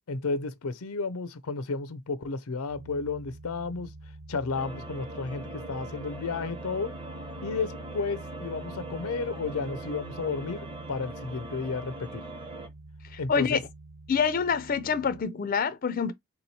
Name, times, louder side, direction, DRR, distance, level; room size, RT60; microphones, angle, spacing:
voice 1, 0.1-3.9 4.3-6.9 7.4-12.2 13.2-13.6, left 4 dB, 90° left, 0.5 m, -32 dB
sound 1, 2.7-15.2, right 2 dB, 75° right, 0.8 m, -46 dB
sound 2, 4.5-12.7, right 2 dB, 25° right, 0.8 m, -42 dB
voice 2, 13.1-13.6 14.1-16.1, left 6 dB, 40° left, 0.4 m, -26 dB
3.5 x 3.0 x 4.0 m
head